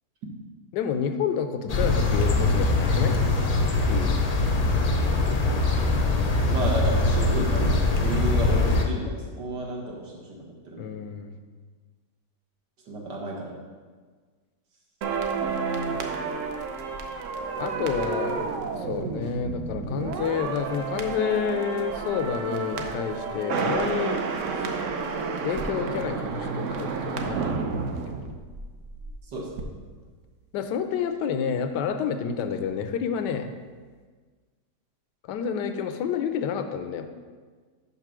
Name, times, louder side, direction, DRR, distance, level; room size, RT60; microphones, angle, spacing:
voice 1, 0.7-3.1 3.9-4.2 10.8-11.3 17.6-18.5 18.8-24.2 24.5-24.8 25.4-28.4 30.5-33.5 35.2-37.1, left 7 dB, 85° left, 8 dB, 1.2 m, -29 dB
sound 1, 1.7-8.8, left 2 dB, 60° left, 0.4 m, -22 dB
voice 2, 6.5-10.9 12.9-13.6 15.7-16.3 29.2-29.7, right 2 dB, 85° right, -3 dB, 2.1 m, -33 dB
sound 2, 15.0-29.2 29.4-29.6, right 5 dB, 60° right, 0.8 m, -30 dB
5.6 x 5.3 x 6.0 m, 1.5 s
omnidirectional pair, 1.8 m